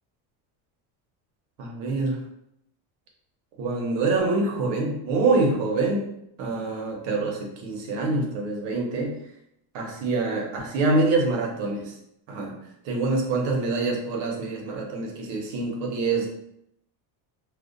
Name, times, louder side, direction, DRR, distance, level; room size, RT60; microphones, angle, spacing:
voice 1, 1.6-2.2 3.6-6.1 6.4-9.2 9.7-11.9 12.3-12.6 12.8-16.3, right 3 dB, 70° right, 0 dB, 0.9 m, -25 dB
2.4 x 2.1 x 2.5 m, 0.78 s
cardioid pair, 130°, 46 cm